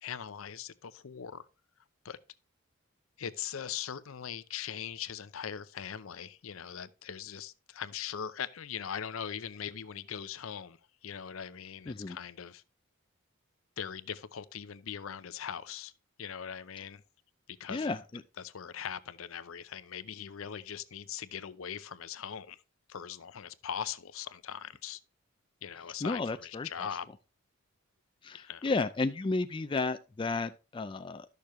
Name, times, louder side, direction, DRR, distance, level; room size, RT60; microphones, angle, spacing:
voice 1, 0.0-1.5 2.0-2.2 3.2-12.6 13.8-15.9 16.2-17.0 17.6-17.9 18.4-22.6 22.9-25.0 25.6-27.1 28.3-28.7, left 8 dB, 75° left, 0.5 m, -40 dB
voice 2, 11.9-12.2 17.7-18.2 26.0-26.9 28.2-31.3, left 3 dB, 25° left, 0.3 m, -33 dB
12.0 x 6.6 x 3.1 m
head